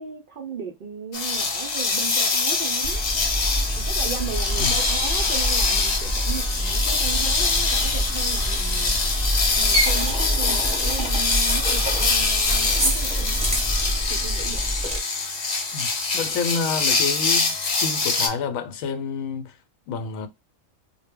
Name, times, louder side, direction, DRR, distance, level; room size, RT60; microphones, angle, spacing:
voice 1, 0.0-3.0 3.7-9.0 9.6-13.8 14.1-14.6, right 6 dB, 75° right, 0.5 m, -36 dB
sound 1, 1.1-18.3, left 4 dB, 60° left, 0.4 m, -24 dB
sound 2, 2.8-15.0, right 1 dB, 5° right, 0.6 m, -26 dB
voice 2, 15.7-19.6 19.9-20.3, left 5 dB, 80° left, 1.0 m, -29 dB
2.1 x 2.1 x 3.4 m
omnidirectional pair, 1.4 m